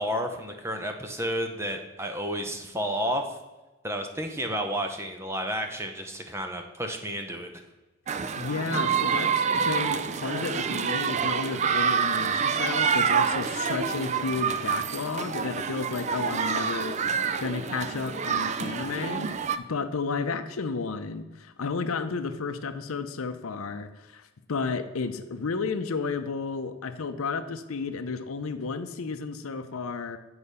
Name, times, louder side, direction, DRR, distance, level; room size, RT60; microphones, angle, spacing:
voice 1, 0.0-3.4 3.8-7.5, equal, 10° right, 5 dB, 0.7 m, -31 dB
sound 1, 8.1-19.6, right 6 dB, 30° right, 0.3 m, -27 dB
voice 2, 8.4-17.0 17.4-19.3 19.6-30.2, left 4 dB, 75° left, 9 dB, 0.6 m, -32 dB
8.4 x 4.8 x 5.5 m, 1.1 s
head